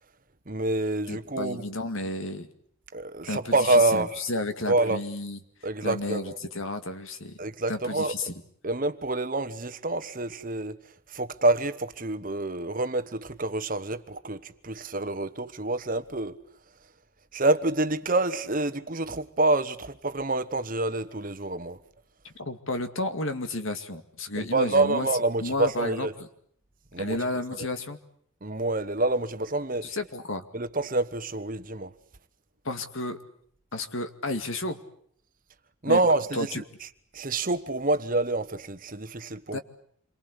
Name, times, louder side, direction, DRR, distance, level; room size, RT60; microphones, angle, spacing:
voice 1, 0.5-1.6 2.9-4.2 4.7-5.0 5.6-6.4 7.4-8.1 8.6-10.8 11.1-16.4 17.3-21.8 24.3-26.1 26.9-27.2 28.4-30.0 30.5-31.9 35.8-36.6 37.1-39.6, right 2 dB, 40° right, 1.2 m, -27 dB
voice 2, 1.1-2.5 3.3-5.4 5.8-7.4 7.7-8.3 22.2-25.1 25.4-26.3 27.0-28.0 29.8-30.5 32.6-33.2 33.7-34.8 35.9-36.0 36.3-36.6 39.5-39.6, left 2 dB, 65° left, 2.2 m, -32 dB
28.0 x 23.5 x 8.4 m
head